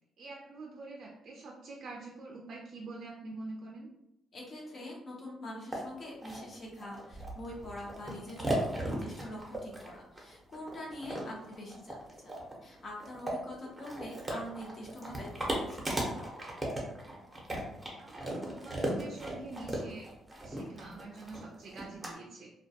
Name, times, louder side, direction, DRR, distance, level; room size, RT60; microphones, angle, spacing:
voice 1, 0.2-3.9 18.0-20.1 20.4-22.5, right 2 dB, 60° right, 0 dB, 0.4 m, -45 dB
voice 2, 4.3-12.3 12.6-16.3, left 1 dB, 50° left, -2 dB, 0.8 m, -44 dB
sound 1, 5.7-5.8 6.2-22.1, right 1 dB, 15° right, 0.7 m, -37 dB
2.2 x 2.2 x 2.7 m, 0.83 s
cardioid pair, 90°, 0 cm